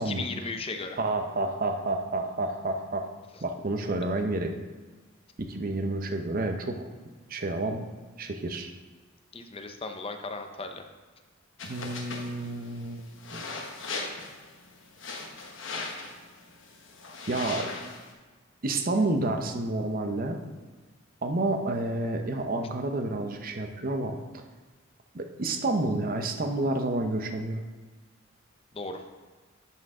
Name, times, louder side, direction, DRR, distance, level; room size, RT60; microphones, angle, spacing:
voice 1, 0.0-1.0 9.3-10.8 28.7-29.0, left 3 dB, 25° left, 6 dB, 0.5 m, -36 dB
voice 2, 1.0-3.1 3.4-4.5 5.4-6.8 7.3-7.8 8.2-8.7 11.7-13.0 13.3-13.4 17.3-17.7 18.6-20.4 21.2-24.4 25.1-27.6, right 2 dB, 45° right, 5 dB, 0.7 m, -29 dB
sound 1, 11.6-18.1, left 3 dB, 65° left, 1.1 m, -39 dB
11.0 x 4.5 x 3.7 m, 1.4 s
head